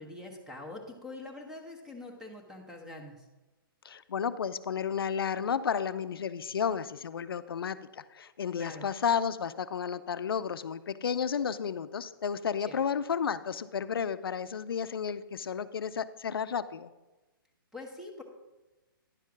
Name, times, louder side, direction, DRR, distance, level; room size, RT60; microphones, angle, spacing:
voice 1, 0.0-3.2 8.5-8.9 12.7-12.8 17.7-18.2, left 2 dB, 5° right, 2 dB, 1.0 m, -44 dB
voice 2, 3.8-16.9, left 7 dB, 85° left, 13 dB, 0.5 m, -32 dB
10.5 x 4.6 x 5.9 m, 1.1 s
hypercardioid pair, 150°, 12 cm